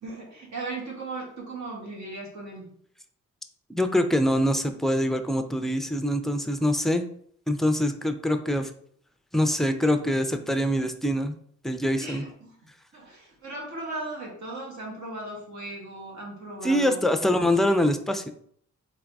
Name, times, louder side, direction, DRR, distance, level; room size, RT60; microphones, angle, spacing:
voice 1, 0.0-2.7 12.0-12.6 12.9-17.1, right 2 dB, 70° right, -2 dB, 1.6 m, -37 dB
voice 2, 3.7-7.0 7.5-8.7 9.3-11.4 11.6-12.2 16.6-18.3, left 1 dB, ahead, 8 dB, 0.4 m, -24 dB
4.0 x 3.7 x 3.4 m, 0.63 s
cardioid pair, 95°, 30 cm